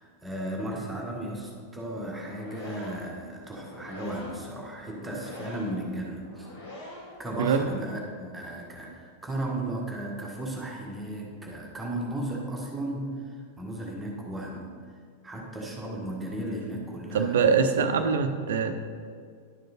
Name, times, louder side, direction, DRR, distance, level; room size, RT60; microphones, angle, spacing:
voice 1, 0.0-6.5 7.2-14.7 15.2-17.4, right 1 dB, 10° right, -2 dB, 1.6 m, -35 dB
sound 1, 2.1-7.3, left 1 dB, 60° left, 2.7 m, -44 dB
voice 2, 7.4-7.7 17.1-18.8, right 6 dB, 60° right, 8 dB, 0.7 m, -23 dB
11.0 x 6.4 x 4.3 m, 2.1 s
figure-of-eight pair, 90°, 0 cm